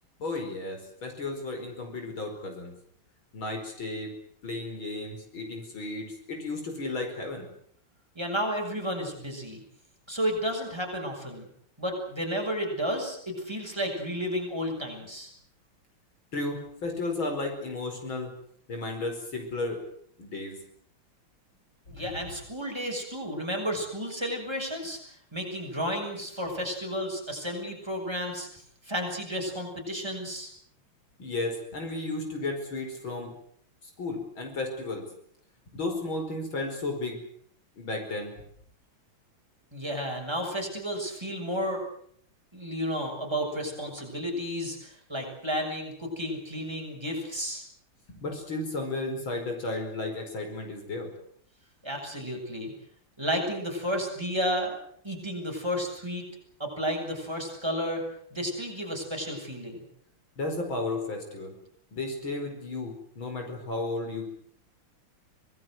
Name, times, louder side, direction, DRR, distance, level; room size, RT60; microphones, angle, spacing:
voice 1, 0.2-2.7 3.3-4.1 4.4-7.5 16.3-18.3 18.7-19.8 20.2-20.6 21.9-22.3 31.2-33.3 34.0-35.1 35.7-37.2 37.8-38.3 48.1-51.1 60.4-61.5 61.9-64.3, left 2 dB, 70° left, 4 dB, 5.7 m, -33 dB
voice 2, 8.2-9.6 10.1-11.5 11.8-15.3 21.9-25.0 25.3-28.5 28.8-30.5 39.7-41.8 42.5-47.6 51.8-52.7 53.2-54.8 55.0-56.2 56.6-58.0 58.3-59.8, equal, 10° right, 2 dB, 6.8 m, -32 dB
25.5 x 19.5 x 7.9 m, 0.64 s
omnidirectional pair, 2.2 m